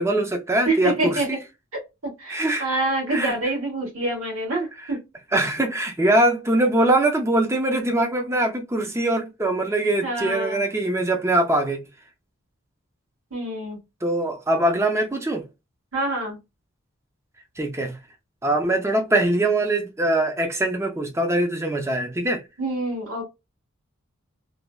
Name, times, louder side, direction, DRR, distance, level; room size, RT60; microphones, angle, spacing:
voice 1, 0.0-1.4 2.3-2.7 3.1-3.4 5.3-11.9 14.0-15.5 17.6-18.0 18.4-22.4, right 1 dB, 15° right, 0.5 m, -22 dB
voice 2, 0.6-1.3 2.0-5.0 10.0-10.6 13.3-13.8 15.9-16.4 22.6-23.2, right 2 dB, 80° right, 1.6 m, -26 dB
3.1 x 2.1 x 2.2 m
head